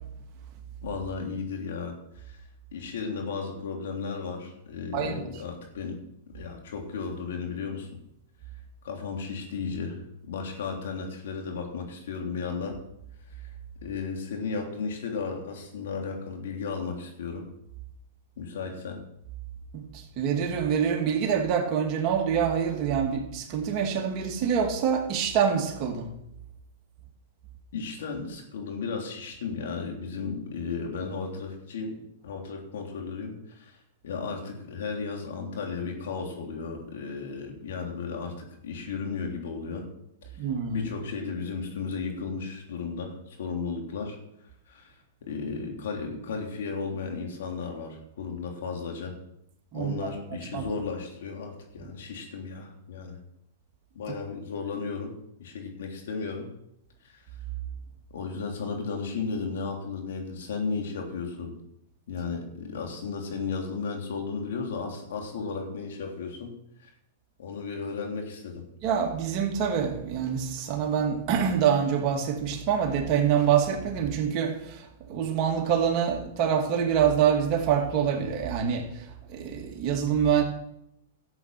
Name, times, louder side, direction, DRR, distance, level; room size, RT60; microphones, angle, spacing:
voice 1, 0.8-2.4 2.7-6.0 6.3-7.9 8.8-12.8 13.3-13.5 13.8-17.5 18.4-19.0 27.7-32.0 32.2-33.8 34.0-39.9 40.7-44.2 44.7-44.9 45.3-49.2 49.7-53.2 53.9-55.1 55.4-56.5 57.0-57.2 58.1-61.5 62.1-66.5 66.8-66.9 67.4-68.6, left 5 dB, 70° left, 3.4 m, -34 dB
voice 2, 19.7-26.1 40.4-40.9 49.7-49.9 50.5-50.6 68.8-79.0 79.3-80.4, right 8 dB, 40° right, 2.3 m, -26 dB
13.0 x 8.1 x 5.9 m
hypercardioid pair, 130°, 0 cm